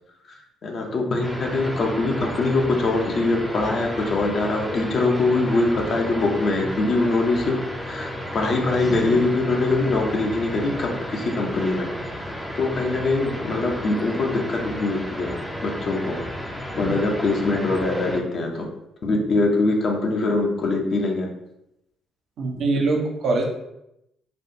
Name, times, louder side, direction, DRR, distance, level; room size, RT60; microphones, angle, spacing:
voice 1, 0.6-7.6 7.8-11.9 12.5-15.3 15.6-16.2 16.7-18.7 19.0-21.3, left 2 dB, 45° left, 0 dB, 0.7 m, -23 dB
sound 1, 1.2-18.2, equal, 5° left, 0.6 m, -33 dB
voice 2, 22.4-23.4, right 3 dB, 55° right, 0 dB, 0.7 m, -22 dB
4.3 x 2.4 x 2.8 m, 0.84 s
figure-of-eight pair, 45°, 0 cm